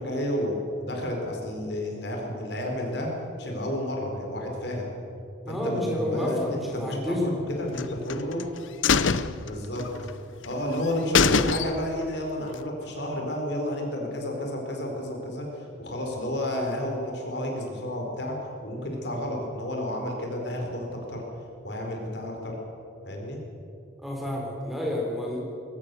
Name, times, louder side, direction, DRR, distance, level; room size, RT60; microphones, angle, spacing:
voice 1, 0.0-3.1 3.4-4.9 5.5-7.2 7.5-8.4 9.5-9.9 10.4-18.4 18.6-21.2 21.6-22.6 23.0-23.4, left 1 dB, 60° left, 1 dB, 4.5 m, -31 dB
voice 2, 5.4-7.3 24.0-25.4, left 1 dB, ahead, -2 dB, 3.8 m, -29 dB
sound 1, 7.7-8.4 8.8-10.1 10.4-10.5 10.8-10.9 11.1-12.0 12.4-12.5, left 5 dB, 80° left, 0.7 m, -24 dB
22.0 x 18.5 x 7.0 m, 2.8 s
head